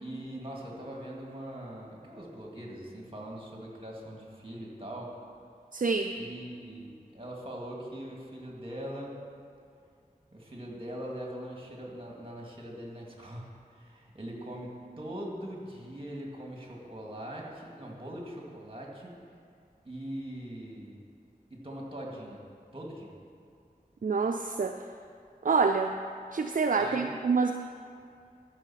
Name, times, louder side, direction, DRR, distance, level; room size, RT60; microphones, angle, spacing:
voice 1, 0.0-5.1 6.1-9.1 10.3-19.1 19.8-21.0 21.5-22.4 22.7-23.1 26.7-27.1, right 1 dB, 35° right, -2 dB, 2.3 m, -41 dB
voice 2, 5.7-6.1 24.0-24.8 25.4-25.9 26.3-27.5, right 4 dB, 60° right, 6 dB, 0.4 m, -26 dB
13.5 x 6.3 x 5.8 m, 2.3 s
wide cardioid pair, 40°, 16 cm